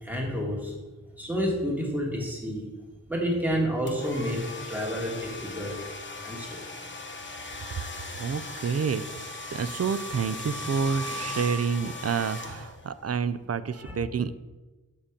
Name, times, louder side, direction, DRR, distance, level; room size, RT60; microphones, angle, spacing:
voice 1, 0.0-0.7 1.2-2.7 3.1-4.4 4.7-5.7 6.2-6.6 13.7-14.0, equal, 5° right, -2 dB, 2.3 m, -29 dB
sound 1, 3.9-13.0, left 2 dB, 35° left, 1.1 m, -38 dB
voice 2, 8.2-14.3, right 6 dB, 50° right, 14 dB, 0.5 m, -29 dB
7.4 x 6.8 x 5.1 m, 1.2 s
wide cardioid pair, 50°, 32 cm